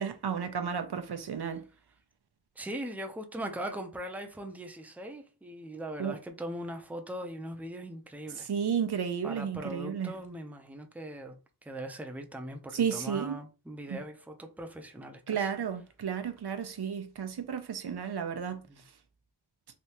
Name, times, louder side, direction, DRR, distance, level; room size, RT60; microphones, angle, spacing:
voice 1, 0.0-1.6 6.0-6.2 8.4-10.1 12.7-13.3 13.9-14.0 15.3-18.6, right 7 dB, 75° right, 0.6 m, -32 dB
voice 2, 2.6-8.5 9.2-15.5 18.7-18.8, right 1 dB, 5° right, 0.5 m, -40 dB
3.3 x 2.7 x 2.8 m
wide cardioid pair, 55°, 39 cm